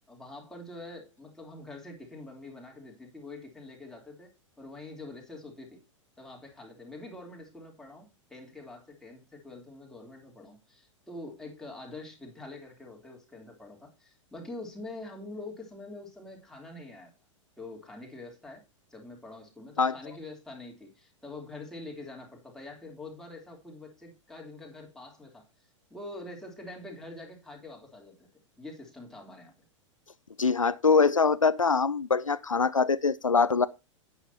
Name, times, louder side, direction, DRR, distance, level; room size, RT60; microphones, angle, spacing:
voice 1, 0.1-5.8 6.2-17.1 17.6-18.6 18.9-25.4 25.9-28.3 28.6-29.5, left 2 dB, 5° left, 3.4 m, -45 dB
voice 2, 30.4-33.7, left 5 dB, 85° left, 0.6 m, -23 dB
11.5 x 9.2 x 2.9 m
figure-of-eight pair, 95°, 16 cm